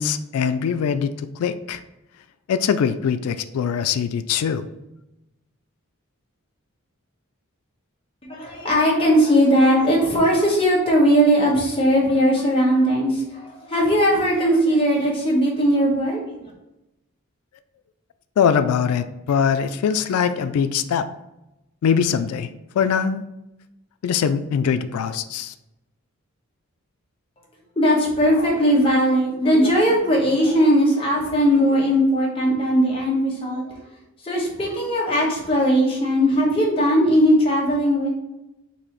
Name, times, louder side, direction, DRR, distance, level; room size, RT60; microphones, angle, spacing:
voice 1, 0.0-1.8 2.5-4.6 18.4-21.1 21.8-22.5 22.7-23.2 24.0-25.5, left 7 dB, 85° left, 11 dB, 0.3 m, -22 dB
voice 2, 8.2-16.5 27.8-33.6 34.2-38.1, equal, 25° left, -3 dB, 1.1 m, -19 dB
4.2 x 2.7 x 4.5 m, 0.93 s
head